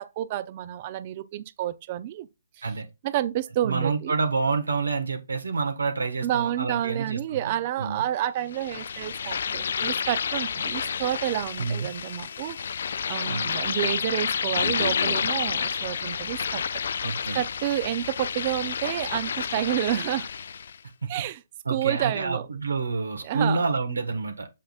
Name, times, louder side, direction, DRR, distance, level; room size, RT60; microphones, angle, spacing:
voice 1, 0.0-2.3 2.6-2.7 3.0-4.1 6.2-16.6 17.3-20.3 21.1-21.4 21.7-22.5 23.2-23.7, right 12 dB, 35° right, 0.6 m, -29 dB
voice 2, 3.6-7.4 7.8-8.0 11.6-11.9 13.3-13.5 17.0-17.4 21.6-24.5, right 4 dB, 75° right, 1.4 m, -28 dB
sound 1, 8.5-20.8, left 7 dB, 55° left, 0.3 m, -30 dB
7.5 x 5.5 x 2.4 m
figure-of-eight pair, 140°, 0 cm